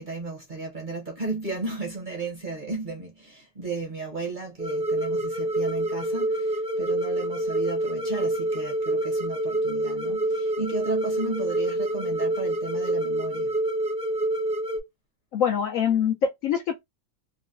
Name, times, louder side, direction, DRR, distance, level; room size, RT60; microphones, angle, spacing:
voice 1, 0.0-13.5, right 3 dB, 35° right, 0.8 m, -34 dB
sound 1, 4.6-14.8, right 1 dB, 10° right, 0.4 m, -27 dB
voice 2, 15.3-16.8, left 8 dB, 70° left, 0.8 m, -24 dB
3.8 x 2.1 x 2.4 m
omnidirectional pair, 1.8 m